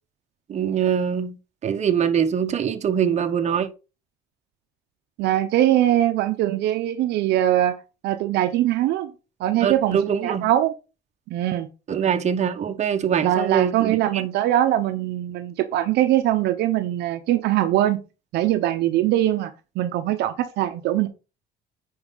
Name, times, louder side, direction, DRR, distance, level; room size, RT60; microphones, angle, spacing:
voice 1, 0.5-1.4 1.6-3.7 9.6-10.5 11.9-14.2, right 8 dB, 40° right, 1.1 m, -23 dB
voice 2, 5.2-7.8 8.0-9.1 9.4-10.7 11.3-11.7 13.2-18.0 18.3-21.1, right 13 dB, 80° right, 0.8 m, -22 dB
9.6 x 4.8 x 4.0 m
cardioid pair, 110°, 17 cm